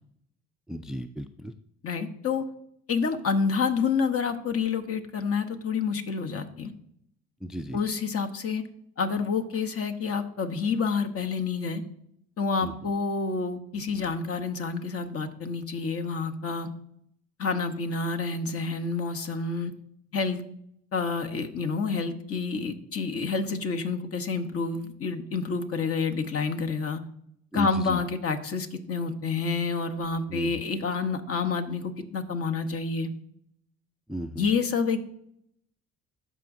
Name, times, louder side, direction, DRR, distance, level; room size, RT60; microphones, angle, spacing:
voice 1, 0.7-1.5 7.4-7.8 12.6-12.9 27.5-28.0 30.3-30.6 34.1-34.5, equal, ahead, 10 dB, 0.4 m, -36 dB
voice 2, 1.8-2.5 2.9-6.7 7.7-8.6 9.0-11.8 12.4-16.7 17.4-19.7 20.1-20.4 20.9-27.0 27.5-33.1 34.4-35.0, left 5 dB, 50° left, 6 dB, 1.1 m, -28 dB
13.0 x 5.0 x 2.7 m, 0.73 s
supercardioid pair, 80°, 31 cm